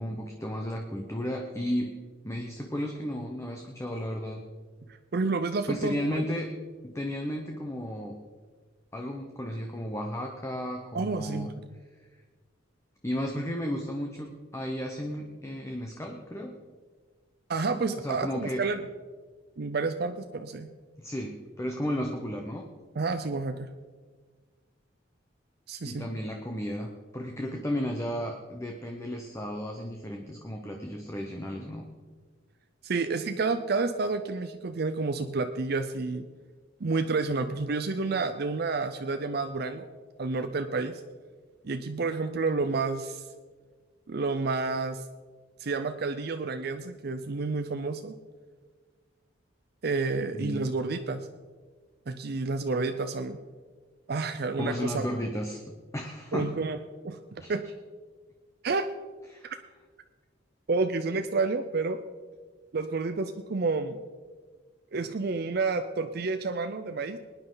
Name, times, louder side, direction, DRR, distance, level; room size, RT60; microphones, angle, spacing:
voice 1, 0.0-1.9 2.2-4.4 5.7-6.5 6.8-8.2 8.9-11.5 13.0-16.5 18.0-18.6 21.0-22.6 25.8-31.8 50.3-50.6 54.6-55.6 55.9-56.5 57.4-57.5 59.3-59.5, equal, 15° left, 2 dB, 0.9 m, -33 dB
voice 2, 5.1-6.2 10.9-11.5 17.5-18.8 19.6-20.7 23.0-23.7 25.7-26.1 32.8-36.3 36.8-39.9 40.2-41.0 41.6-43.2 44.1-45.0 45.6-48.1 49.8-51.2 52.1-53.4 54.1-55.0 56.3-56.8 57.0-57.2 57.5-57.6 58.6-58.9 59.4-59.6 60.7-62.0 62.7-64.0 64.9-67.2, right 3 dB, 55° right, 8 dB, 0.5 m, -29 dB
20.5 x 10.0 x 3.9 m, 1.5 s
head